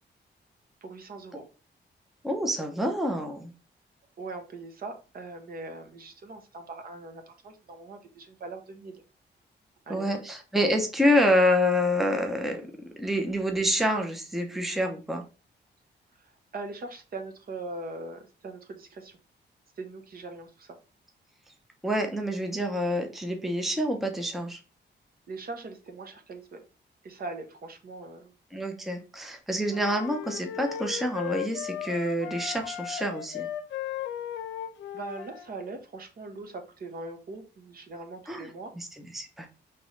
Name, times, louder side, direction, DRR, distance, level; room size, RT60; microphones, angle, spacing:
voice 1, 0.8-1.4 4.2-9.0 9.9-10.2 16.2-19.2 19.8-20.8 25.3-26.6 27.0-28.3 34.9-38.7, right 3 dB, 55° right, 5 dB, 0.9 m, -41 dB
voice 2, 2.2-3.5 9.9-12.6 13.0-15.2 21.8-24.6 28.5-33.5 38.3-38.5 38.8-39.5, equal, ahead, 3 dB, 0.6 m, -27 dB
sound 1, 29.7-35.5, left 11 dB, 85° left, 0.6 m, -36 dB
5.1 x 3.0 x 3.1 m, 0.34 s
wide cardioid pair, 150°, 19 cm